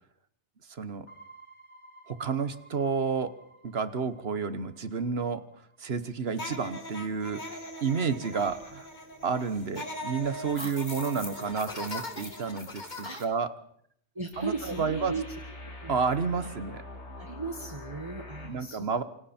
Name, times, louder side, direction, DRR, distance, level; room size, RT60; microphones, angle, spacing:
voice 1, 0.6-1.1 2.1-5.5 5.8-8.9 9.2-13.5 14.4-14.5 14.8-15.1 15.9-16.8 18.4-19.0, right 5 dB, 60° right, 13 dB, 1.4 m, -30 dB
sound 1, 1.1-6.0 6.4-6.5 14.3-18.5, left 1 dB, 70° left, 3.0 m, -46 dB
sound 2, 6.3-13.2, left 1 dB, 40° left, 2.3 m, -40 dB
voice 2, 14.2-15.3 15.6-15.9 16.4-16.5 17.2-19.0, right 3 dB, 25° right, 3 dB, 1.8 m, -37 dB
28.0 x 25.5 x 4.4 m, 0.67 s
omnidirectional pair, 1.2 m